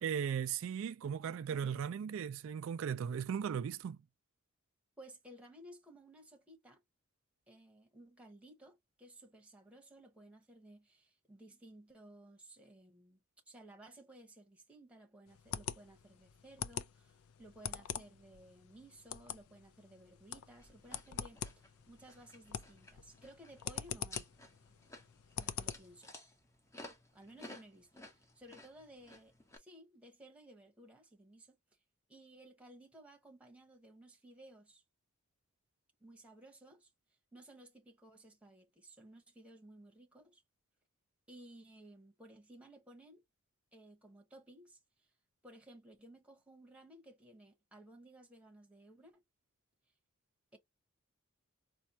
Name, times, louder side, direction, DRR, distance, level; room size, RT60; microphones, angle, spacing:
voice 1, 0.0-4.0, right 7 dB, 65° right, 0.3 m, -37 dB
voice 2, 5.0-6.8 7.5-13.2 13.5-24.3 25.4-26.1 27.1-31.6 32.1-34.8 36.0-36.9 37.3-40.4 41.3-43.2 43.7-44.8 45.4-49.2 50.5-50.6, right 1 dB, 5° right, 1.0 m, -57 dB
sound 1, 15.3-26.0, left 8 dB, 85° left, 0.4 m, -45 dB
sound 2, 20.6-29.6, left 1 dB, 15° left, 0.7 m, -56 dB
4.3 x 2.3 x 2.7 m
head